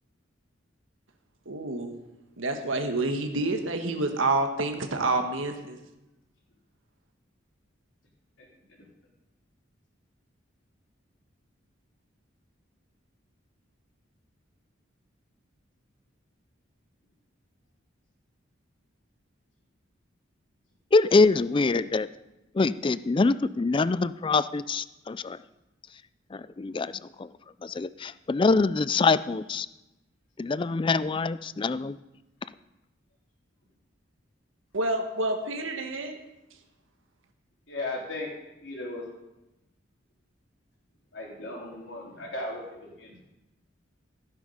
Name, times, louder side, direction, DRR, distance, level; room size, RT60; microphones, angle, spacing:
voice 1, 1.4-2.0 2.4-5.8 34.7-36.2, right 2 dB, 80° right, 5 dB, 1.4 m, -28 dB
voice 2, 20.9-22.1 22.5-25.4 26.3-26.9 27.2-27.3 27.6-29.7 30.4-32.0, left 3 dB, 25° left, 16 dB, 0.3 m, -24 dB
voice 3, 37.7-38.3 38.6-39.0 41.1-43.2, left 2 dB, 65° left, -2 dB, 4.0 m, -36 dB
15.0 x 9.8 x 5.6 m, 0.98 s
head